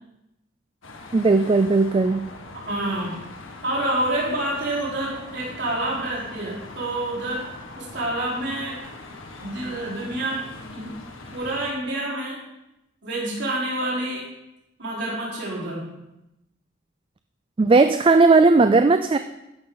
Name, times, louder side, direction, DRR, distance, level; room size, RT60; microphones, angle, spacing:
sound 1, 0.8-11.7, left 2 dB, 80° left, 1.5 m, -41 dB
voice 1, 1.1-2.2 17.6-19.2, right 3 dB, 25° right, 9 dB, 0.3 m, -16 dB
voice 2, 2.7-3.2 3.6-7.4 7.8-8.8 9.4-10.4 10.7-10.9 11.3-12.4 13.0-14.2 14.8-15.9, right 1 dB, 60° right, -5 dB, 4.4 m, -28 dB
13.0 x 11.0 x 4.0 m, 0.90 s
head